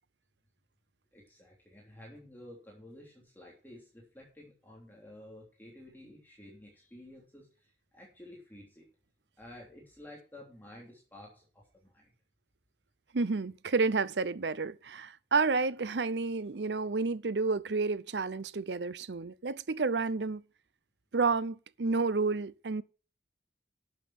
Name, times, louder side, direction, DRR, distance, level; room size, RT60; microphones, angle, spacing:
voice 1, 1.1-8.9 9.4-12.1, left 1 dB, 10° left, 3.2 m, -52 dB
voice 2, 13.1-20.4 21.1-22.8, right 4 dB, 85° right, 0.7 m, -30 dB
11.5 x 7.4 x 5.9 m
head